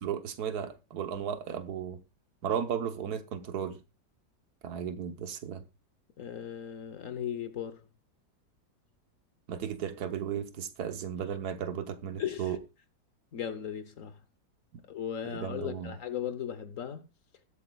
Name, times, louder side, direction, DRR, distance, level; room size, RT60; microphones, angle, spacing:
voice 1, 0.0-2.0 2.4-3.8 4.6-5.6 9.5-12.6 15.3-16.0, right 8 dB, 70° right, 1.4 m, -35 dB
voice 2, 6.2-7.8 12.2-12.5 13.3-14.2 14.9-17.1, left 9 dB, 60° left, 1.1 m, -37 dB
20.5 x 8.0 x 2.3 m
omnidirectional pair, 1.8 m